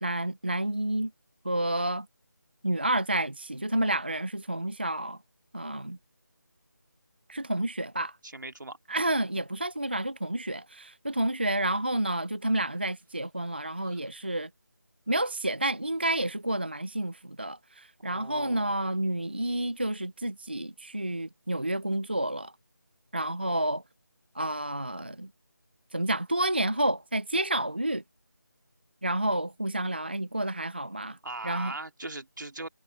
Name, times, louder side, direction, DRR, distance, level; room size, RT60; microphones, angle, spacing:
voice 1, 0.0-1.1 1.4-2.1 2.6-5.2 5.5-6.0 7.3-8.2 8.9-14.5 15.1-22.5 23.1-23.8 24.4-25.3 25.9-28.0 29.0-31.2 31.4-31.7, right 1 dB, 30° right, 0.4 m, -30 dB
voice 2, 8.2-8.8 13.8-14.0 18.0-18.7 31.2-32.7, right 2 dB, 75° right, 2.5 m, -40 dB
figure-of-eight pair, 180°, 10 cm